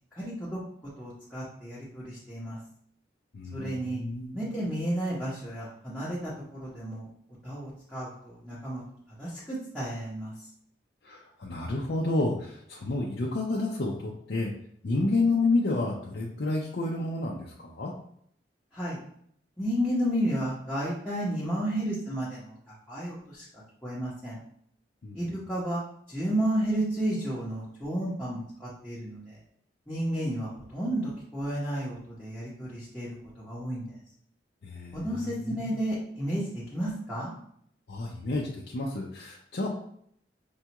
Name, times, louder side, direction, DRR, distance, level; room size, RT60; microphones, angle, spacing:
voice 1, 0.1-0.6 1.0-2.6 3.5-4.0 4.3-7.1 7.4-8.8 9.2-10.5 18.7-19.0 19.6-23.4 23.8-24.4 25.1-25.8 26.1-29.4 29.9-34.0 34.9-37.3, right 1 dB, 5° left, -10 dB, 0.8 m, -32 dB
voice 2, 3.3-4.4 11.0-14.5 14.8-17.9 25.0-25.2 34.6-35.7 37.9-39.7, left 2 dB, 60° left, -3 dB, 0.5 m, -30 dB
5.3 x 2.3 x 2.9 m, 0.67 s
head